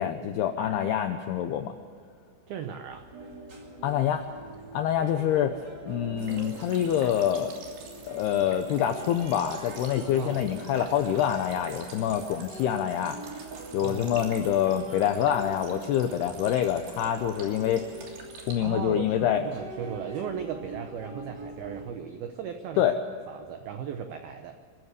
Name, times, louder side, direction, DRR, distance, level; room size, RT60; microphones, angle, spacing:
voice 1, 0.0-1.7 3.8-4.3 4.7-5.6 5.9-7.5 8.1-13.2 13.7-17.8 18.5-19.4 22.8-22.9, left 10 dB, 80° left, 6 dB, 2.3 m, -26 dB
voice 2, 0.6-0.9 2.5-3.1 10.2-10.4 13.8-14.3 18.3-22.9 23.3-24.6, right 7 dB, 85° right, 7 dB, 2.1 m, -37 dB
sound 1, 2.9-21.9, right 2 dB, 40° right, 1.4 m, -43 dB
sound 2, 6.2-18.5, right 5 dB, 60° right, 4.9 m, -47 dB
25.5 x 14.0 x 8.3 m, 2.2 s
omnidirectional pair, 5.8 m